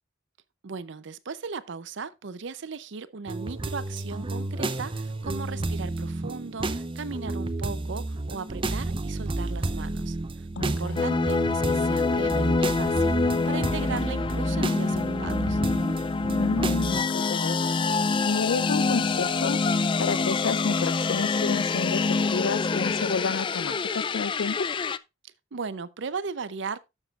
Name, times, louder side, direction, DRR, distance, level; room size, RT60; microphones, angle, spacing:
voice 1, 0.6-15.6 25.2-26.8, right 5 dB, 70° right, 0.6 m, -37 dB
sound 1, 3.3-17.0, right 2 dB, 30° right, 0.6 m, -31 dB
voice 2, 10.6-11.0 16.4-17.6 18.3-19.6 20.0-24.7, left 5 dB, 90° left, 0.5 m, -30 dB
sound 2, 11.0-25.0, left 4 dB, 25° left, 0.3 m, -26 dB
11.5 x 7.3 x 2.4 m
head